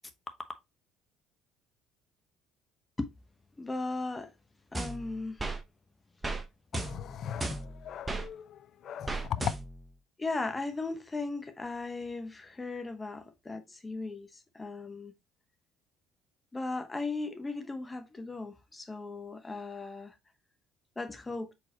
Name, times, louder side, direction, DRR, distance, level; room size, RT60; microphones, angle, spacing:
voice 1, 3.6-4.3 4.7-5.5 7.3-7.6 10.2-15.1 16.5-20.1 21.0-21.5, left 3 dB, 15° left, 0.9 m, -37 dB
sound 1, 4.7-5.6 6.2-6.4 6.7-8.3 9.1-9.9, right 2 dB, 15° right, 0.8 m, -35 dB
voice 2, 6.7-9.5, left 9 dB, 55° left, 0.4 m, -38 dB
4.6 x 3.9 x 2.8 m
supercardioid pair, 95°, 0 cm